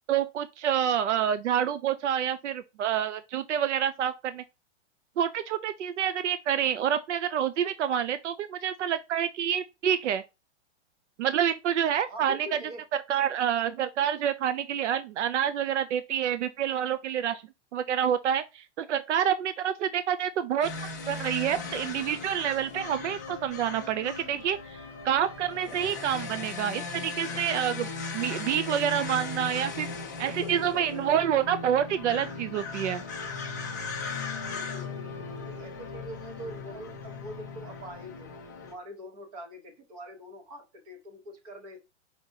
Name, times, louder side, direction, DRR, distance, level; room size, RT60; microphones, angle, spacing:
voice 1, 0.1-4.4 5.2-10.2 11.2-12.4 13.1-17.4 17.7-20.7 21.1-29.9 30.2-33.0, right 9 dB, 75° right, 0.6 m, -28 dB
voice 2, 12.0-12.8 30.2-31.2 34.5-38.3 38.6-41.8, equal, 30° right, 1.1 m, -44 dB
sound 1, 20.6-38.7, left 4 dB, 15° left, 0.3 m, -38 dB
5.1 x 3.9 x 2.7 m
supercardioid pair, 180°, 35 cm